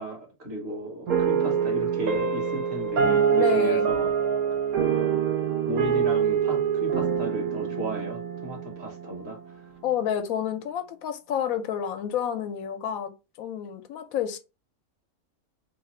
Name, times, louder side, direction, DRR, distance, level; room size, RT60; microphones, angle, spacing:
voice 1, 0.0-4.1 4.9-5.2 5.7-9.8, right 1 dB, 50° right, 1.1 m, -35 dB
sound 1, 1.1-9.6, right 7 dB, 85° right, 1.3 m, -25 dB
voice 2, 3.3-3.9 9.8-13.1 13.4-14.4, left 9 dB, 75° left, 1.0 m, -29 dB
2.9 x 2.4 x 4.2 m
omnidirectional pair, 1.5 m